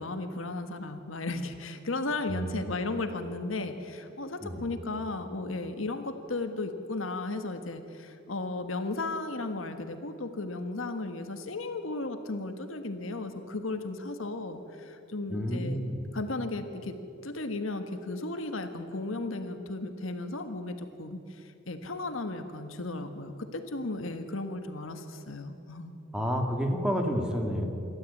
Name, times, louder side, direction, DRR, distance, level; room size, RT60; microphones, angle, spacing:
voice 1, 0.0-15.8 16.1-16.9 17.2-25.9, left 2 dB, 80° left, 7 dB, 1.6 m, -35 dB
voice 2, 15.3-16.0 26.1-27.7, equal, 5° right, 2 dB, 2.3 m, -30 dB
26.5 x 13.0 x 8.6 m, 2.7 s
head